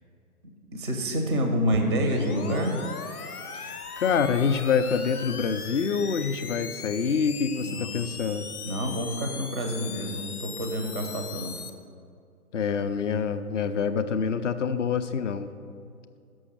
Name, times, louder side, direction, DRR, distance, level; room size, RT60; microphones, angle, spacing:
voice 1, 0.7-2.8 7.6-7.9 8.6-11.6, equal, 20° right, 4 dB, 0.4 m, -28 dB
sound 1, 1.7-11.7, left 6 dB, 70° left, 0.9 m, -39 dB
voice 2, 3.5-8.5 12.5-15.5, left 6 dB, 50° left, 11 dB, 0.6 m, -26 dB
6.3 x 6.2 x 7.3 m, 2.4 s
figure-of-eight pair, 145°, 46 cm